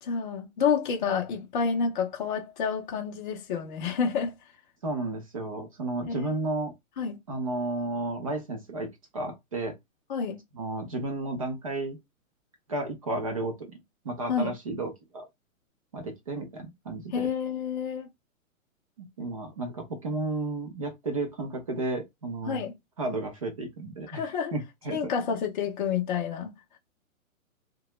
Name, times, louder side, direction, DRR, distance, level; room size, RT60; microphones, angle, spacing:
voice 1, 0.0-4.3 6.1-6.3 7.0-7.2 10.1-10.4 14.3-14.5 17.1-18.1 22.5-22.7 24.1-24.5 24.9-26.5, left 6 dB, 35° left, 0.5 m, -29 dB
voice 2, 4.8-6.7 7.3-9.8 10.5-12.0 12.7-13.6 14.0-15.3 15.9-17.3 19.0-22.7 23.0-25.1, right 2 dB, 25° right, 0.4 m, -33 dB
2.7 x 2.2 x 2.9 m
hypercardioid pair, 155°, 42 cm